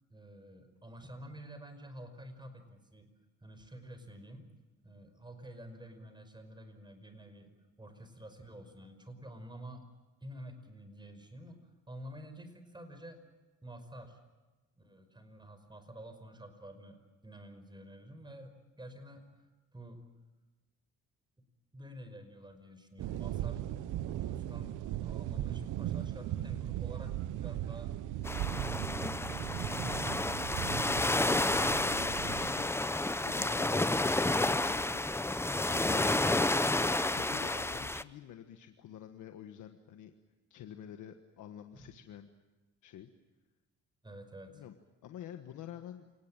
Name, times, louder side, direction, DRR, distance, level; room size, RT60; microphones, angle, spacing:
voice 1, 0.1-3.1 3.4-4.5 4.8-7.5 7.8-9.9 10.2-13.2 13.6-14.2 14.8-20.1 21.7-23.6 24.2-28.0 41.7-41.9 44.0-44.6, right 1 dB, 15° right, 8 dB, 5.6 m, -50 dB
sound 1, 23.0-32.5, right 13 dB, 85° right, 1.0 m, -38 dB
sound 2, 28.2-38.0, left 2 dB, 10° left, 0.7 m, -30 dB
voice 2, 31.3-32.8 33.2-35.0 35.6-36.2 37.0-40.1 40.5-42.3 42.8-43.1 44.5-44.8 45.0-46.1, left 10 dB, 80° left, 6 dB, 1.5 m, -48 dB
28.5 x 19.0 x 9.0 m, 1.2 s
cardioid pair, 90°, 30 cm